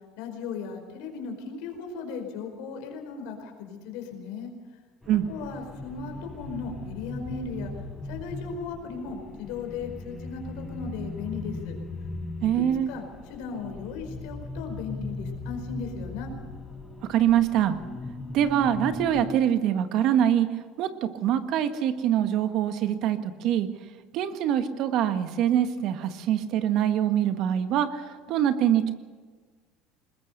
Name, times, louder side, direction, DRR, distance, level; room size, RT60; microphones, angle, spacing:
voice 1, 0.2-4.5 5.3-7.7 8.0-11.8 12.5-16.3, left 5 dB, 75° left, 4 dB, 4.9 m, -37 dB
sound 1, 5.0-19.3, left 2 dB, 10° left, 5.1 m, -38 dB
voice 2, 12.4-12.9 17.1-17.8 18.3-20.5 20.8-20.9 21.2-23.7 24.1-28.9, right 10 dB, 60° right, 9 dB, 1.6 m, -24 dB
21.0 x 21.0 x 6.7 m, 1.4 s
supercardioid pair, 95°, 0 cm